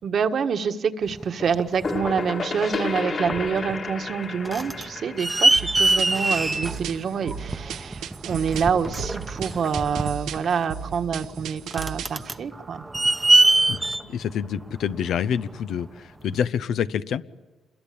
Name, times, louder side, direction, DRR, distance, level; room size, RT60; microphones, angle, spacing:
voice 1, 0.0-12.8, right 6 dB, 55° right, 7 dB, 1.5 m, -27 dB
sound 1, 1.1-2.3 2.9-3.0 3.3-3.8 4.1-15.6 16.3-16.4, right 2 dB, 15° right, 0.9 m, -24 dB
sound 2, 1.4-7.0, left 4 dB, 45° left, 2.4 m, -32 dB
sound 3, 5.6-12.2, right 8 dB, 85° right, 1.0 m, -36 dB
voice 2, 13.7-17.2, left 8 dB, 70° left, 13 dB, 0.8 m, -27 dB
27.5 x 22.0 x 8.7 m, 1.2 s
cardioid pair, 90°, 0 cm